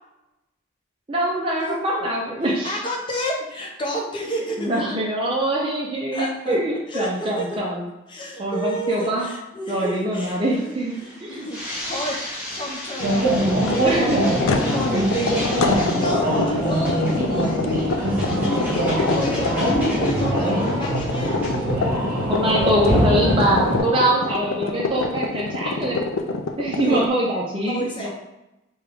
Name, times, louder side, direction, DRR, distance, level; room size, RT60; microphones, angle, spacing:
voice 1, 1.1-2.8 4.6-7.9 8.4-9.3 9.7-10.9 11.2-11.5 13.8-14.2 22.2-26.0 26.6-28.1, right 1 dB, 25° right, -4 dB, 0.5 m, -23 dB
voice 2, 2.6-4.8 6.1-6.6 6.9-7.6 8.1-12.2 12.5-17.8 18.2-21.5 26.8-27.0 27.7-28.1, equal, 25° left, -2 dB, 0.7 m, -31 dB
sound 1, 10.2-21.6, left 1 dB, 10° right, 1.1 m, -36 dB
sound 2, 13.0-23.8, equal, 45° right, 1.5 m, -22 dB
sound 3, 13.4-27.1, left 4 dB, 85° left, 0.4 m, -27 dB
5.3 x 2.3 x 3.4 m, 0.96 s
head